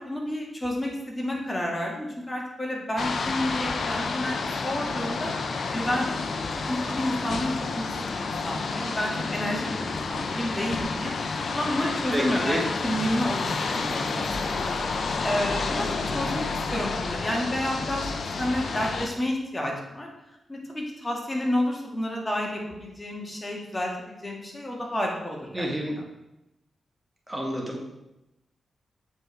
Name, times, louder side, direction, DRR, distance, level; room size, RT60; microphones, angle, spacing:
voice 1, 0.1-5.3 5.7-6.1 6.5-11.1 11.5-20.1 20.5-25.7, left 1 dB, 20° left, -1 dB, 2.0 m, -30 dB
sound 1, 3.0-19.1, left 4 dB, 65° left, 0.6 m, -30 dB
voice 2, 12.1-12.6 25.5-25.9 27.3-27.8, right 1 dB, 15° right, -1 dB, 1.8 m, -29 dB
7.7 x 4.6 x 3.4 m, 0.93 s
supercardioid pair, 45°, 0 cm